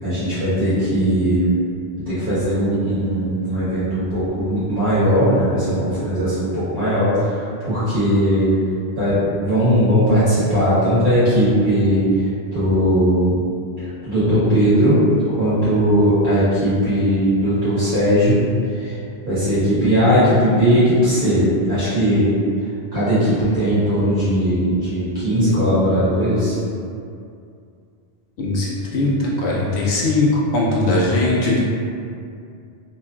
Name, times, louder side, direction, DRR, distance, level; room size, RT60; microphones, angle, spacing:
voice 1, 0.0-1.6 2.1-8.6 8.9-13.4 13.8-18.4 18.6-19.0 19.2-22.3 22.9-26.6, equal, 50° right, -14 dB, 1.1 m, -18 dB
voice 2, 28.4-31.6, left 2 dB, 90° left, -5 dB, 0.9 m, -19 dB
2.8 x 2.4 x 2.2 m, 2.4 s
omnidirectional pair, 1.1 m